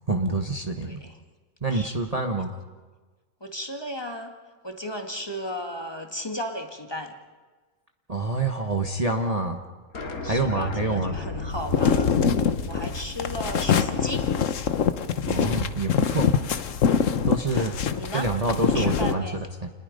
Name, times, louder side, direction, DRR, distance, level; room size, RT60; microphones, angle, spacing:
voice 1, 0.1-1.0 1.6-2.5 8.1-9.6 10.2-11.2 15.3-16.3 17.2-17.7 18.1-19.7, right 2 dB, 25° right, 3 dB, 1.2 m, -27 dB
voice 2, 0.8-1.1 1.7-1.9 3.4-4.3 4.6-7.1 10.2-14.3 17.4-18.3 18.6-19.4, equal, 15° left, 3 dB, 1.8 m, -35 dB
sound 1, 9.9-15.3, left 2 dB, 80° left, 2.5 m, -36 dB
sound 2, 11.5-19.1, left 7 dB, 60° left, 1.3 m, -24 dB
29.0 x 20.5 x 5.3 m, 1.3 s
omnidirectional pair, 1.5 m